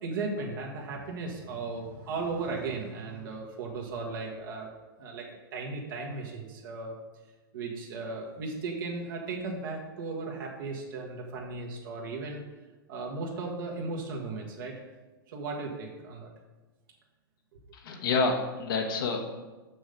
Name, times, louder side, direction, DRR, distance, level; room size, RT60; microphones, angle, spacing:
voice 1, 0.0-4.7 5.0-5.3 5.5-6.9 7.5-12.4 12.9-14.7 15.3-16.3, right 3 dB, 65° right, -1 dB, 1.5 m, -36 dB
voice 2, 17.7-19.3, left 4 dB, 65° left, 1 dB, 1.2 m, -28 dB
6.4 x 6.2 x 5.1 m, 1.2 s
hypercardioid pair, 110°, 12 cm